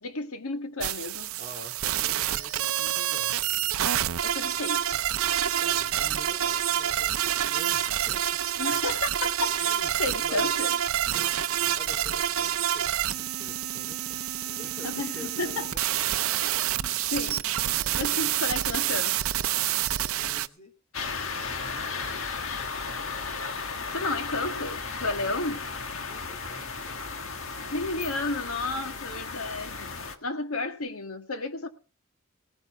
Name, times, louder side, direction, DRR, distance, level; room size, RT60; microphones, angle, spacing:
voice 1, 0.0-1.3 4.2-5.0 8.6-10.7 14.8-15.7 16.4-19.2 23.9-25.7 27.7-30.0 30.2-31.7, left 2 dB, 90° left, 1.7 m, -32 dB
sound 1, 0.8-20.5, right 11 dB, 80° right, 0.6 m, -28 dB
voice 2, 1.4-3.4 5.6-8.4 9.7-9.9 10.2-10.5 11.0-11.4 11.7-14.2 14.5-16.5 17.7-18.0 20.2-20.7 21.7-22.4 26.1-27.2, left 1 dB, 30° left, 3.2 m, -48 dB
sound 2, 20.9-30.2, left 4 dB, 70° left, 1.6 m, -35 dB
18.0 x 9.0 x 5.9 m
head